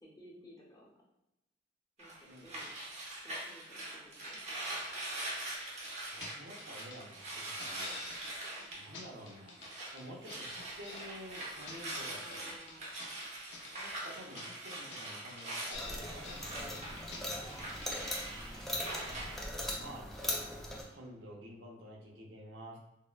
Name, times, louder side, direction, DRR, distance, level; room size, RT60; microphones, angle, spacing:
voice 1, 0.0-0.9 2.0-2.7 3.2-4.7 8.6-9.0 12.1-13.2 16.8-17.7, equal, 20° left, -5 dB, 0.7 m, -58 dB
sound 1, 2.0-10.0 10.2-19.4, right 1 dB, 40° right, 0.6 m, -43 dB
sound 2, 5.8-5.9 6.2-6.3 6.6-7.0 7.3-8.3 8.6-8.7 8.9-9.7 10.0-11.1 11.4-12.4 12.7-13.7 14.0-14.1 14.3-14.5 14.7-15.1 15.4-15.5 15.7-16.5 16.7-16.8 17.1-17.2 17.5-17.9 18.2-18.3, left 3 dB, 75° left, 0.5 m, -48 dB
voice 2, 6.1-8.0 8.8-9.6 9.9-12.5 13.8-17.0 18.9-19.2 19.8-20.4 20.9-22.8, equal, 80° right, -1 dB, 0.6 m, -50 dB
sound 3, 15.7-20.8, left 1 dB, ahead, 0.3 m, -40 dB
3.5 x 2.1 x 2.2 m, 0.90 s
head